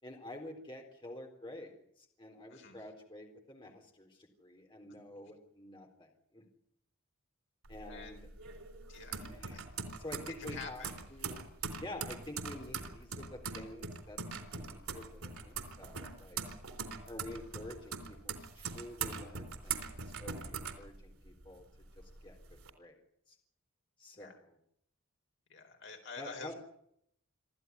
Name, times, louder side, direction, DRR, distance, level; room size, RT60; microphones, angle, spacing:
voice 1, 0.0-6.5 7.7-8.3 9.3-9.6 10.0-10.8 11.1-11.4 11.8-14.3 14.6-16.4 17.1-21.6 22.0-23.0 23.3-23.4 24.0-24.6 26.2-26.6, left 1 dB, 25° left, 2 dB, 3.9 m, -48 dB
sound 1, 7.7-21.5 21.9-22.7, right 5 dB, 85° right, 3.9 m, -42 dB
voice 2, 7.8-8.3 8.9-9.6 10.4-11.0 11.6-11.8 24.2-24.4 25.5-26.6, left 5 dB, 55° left, 4 dB, 4.2 m, -48 dB
26.5 x 14.0 x 9.6 m, 0.72 s
head